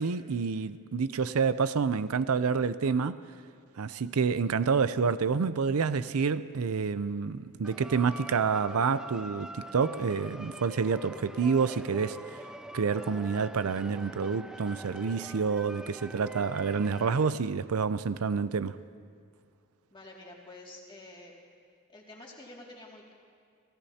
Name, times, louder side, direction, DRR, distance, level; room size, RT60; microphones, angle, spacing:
voice 1, 0.0-3.2 3.8-12.4 12.7-18.8, right 5 dB, 85° right, 0.5 m, -28 dB
sound 1, 7.6-17.3, right 1 dB, 5° right, 0.3 m, -44 dB
voice 2, 19.9-21.3 21.9-23.1, left 2 dB, 25° left, 2.3 m, -48 dB
28.5 x 17.5 x 2.8 m
head